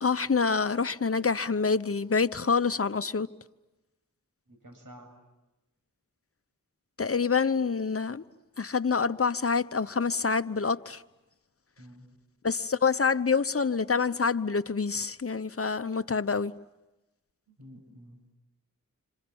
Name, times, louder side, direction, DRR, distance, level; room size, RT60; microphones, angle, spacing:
voice 1, 0.0-3.3 7.0-8.2 8.6-11.0 12.4-16.5, left 5 dB, 45° left, 1.0 m, -27 dB
voice 2, 4.5-5.2 11.8-12.1 17.5-18.3, equal, 75° right, 7.3 m, -50 dB
28.5 x 27.5 x 7.2 m
cardioid pair, 40°, 33 cm